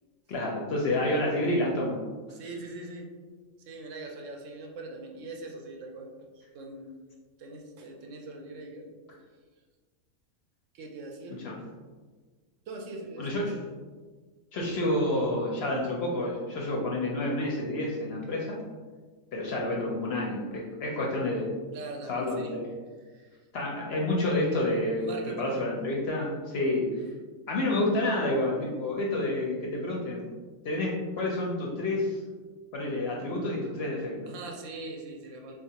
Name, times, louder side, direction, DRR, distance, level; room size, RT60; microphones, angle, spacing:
voice 1, 0.3-2.0 11.4-11.6 13.2-13.6 14.5-18.6 19.3-21.5 22.1-22.7 23.5-27.0 27.5-30.2 30.6-32.2 32.7-34.3, left 1 dB, 65° left, -2 dB, 0.7 m, -29 dB
voice 2, 2.3-3.1 3.7-6.1 6.4-6.9 7.4-8.9 10.7-11.4 12.7-13.6 21.7-22.5 23.0-23.4 25.0-25.7 27.1-27.2 34.3-35.5, right 2 dB, 70° right, 2 dB, 0.9 m, -42 dB
3.8 x 2.4 x 2.8 m, 1.4 s
omnidirectional pair, 1.4 m